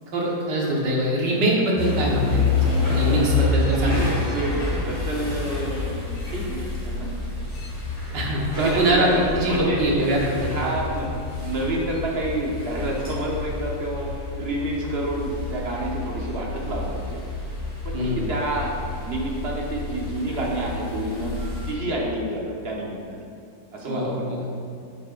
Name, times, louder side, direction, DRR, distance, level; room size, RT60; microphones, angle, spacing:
voice 1, 0.1-2.7 2.9-4.0 8.1-10.7 17.9-18.2 23.9-24.5, right 1 dB, 75° right, -3 dB, 2.0 m, -23 dB
sound 1, 1.8-21.7, left 4 dB, 25° left, 2.0 m, -28 dB
voice 2, 3.6-7.3 8.6-10.1 10.4-17.2 17.8-18.7 19.0-23.2 23.7-24.2, right 1 dB, 40° right, -2 dB, 1.2 m, -29 dB
9.6 x 7.4 x 2.5 m, 2.4 s
omnidirectional pair, 1.9 m